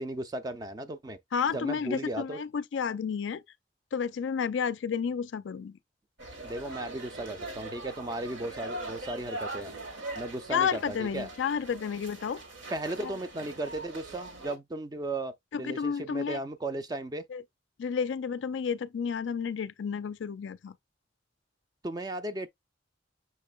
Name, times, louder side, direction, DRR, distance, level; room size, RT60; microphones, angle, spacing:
voice 1, 0.0-1.2 1.5-2.4 6.4-9.8 10.2-11.3 12.7-17.3 21.8-22.5, right 2 dB, 20° right, 0.4 m, -36 dB
voice 2, 1.3-3.4 3.9-5.8 10.5-12.4 13.0-13.1 15.5-16.4 17.3-17.4 17.8-20.7, left 6 dB, 75° left, 0.4 m, -31 dB
sound 1, 6.2-14.6, right 1 dB, 75° right, 1.4 m, -41 dB
5.7 x 3.7 x 2.3 m
head